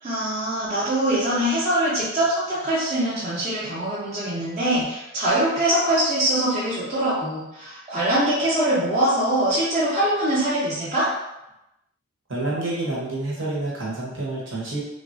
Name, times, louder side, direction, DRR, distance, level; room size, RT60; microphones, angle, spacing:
voice 1, 0.0-11.1, right 1 dB, 30° right, -9 dB, 0.6 m, -23 dB
voice 2, 12.3-14.8, right 2 dB, 60° right, -5 dB, 0.8 m, -28 dB
3.4 x 2.0 x 2.5 m, 0.91 s
head